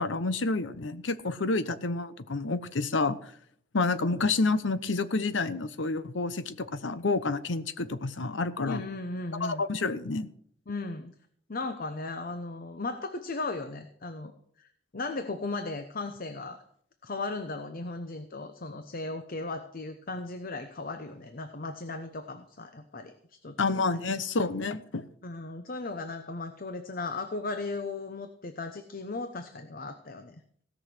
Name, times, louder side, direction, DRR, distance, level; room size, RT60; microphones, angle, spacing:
voice 1, 0.0-3.2 3.7-8.8 9.4-10.3 23.6-25.1, left 3 dB, 80° left, 14 dB, 0.9 m, -29 dB
voice 2, 8.6-9.6 10.7-11.1 11.5-14.3 14.6-16.6 17.0-23.5 25.2-30.4, left 3 dB, 50° left, 8 dB, 0.9 m, -36 dB
17.0 x 6.3 x 7.8 m, 0.64 s
head